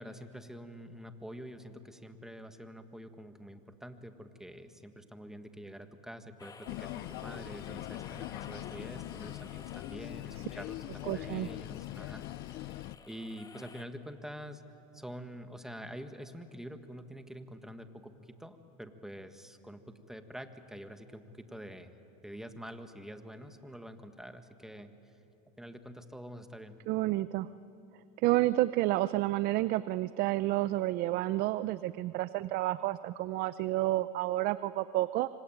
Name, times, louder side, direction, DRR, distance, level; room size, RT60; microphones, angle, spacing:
voice 1, 0.0-14.6 14.9-22.0 22.2-25.2 25.6-26.8, equal, ahead, 7 dB, 1.7 m, -46 dB
sound 1, 6.4-13.8, left 4 dB, 20° left, 1.6 m, -53 dB
sound 2, 6.7-13.0, left 17 dB, 50° left, 0.6 m, -42 dB
voice 2, 11.1-11.5 26.9-27.5 28.2-35.3, right 17 dB, 50° right, 15 dB, 0.6 m, -30 dB
25.5 x 25.5 x 9.2 m, 2.8 s
supercardioid pair, 115°, 20 cm